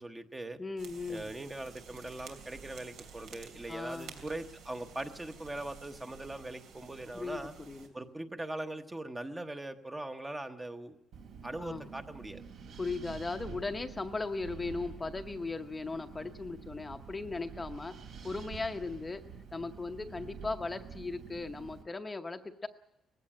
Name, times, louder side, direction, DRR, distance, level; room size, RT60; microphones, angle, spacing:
voice 1, 0.0-0.6 1.1-7.5 7.9-11.0 11.4-12.4, right 2 dB, 10° right, 7 dB, 0.9 m, -41 dB
voice 2, 0.6-1.3 3.7-4.2 7.1-7.4 7.7-7.9 11.6-11.9 12.8-18.0 18.2-19.2 19.5-22.7, left 3 dB, 15° left, 6 dB, 0.8 m, -37 dB
sound 1, 0.8-7.9, right 6 dB, 90° right, 2.8 m, -52 dB
Wind, 11.1-21.8, right 6 dB, 70° right, 3.1 m, -48 dB
19.0 x 16.0 x 8.8 m, 0.85 s
cardioid pair, 150°, 0 cm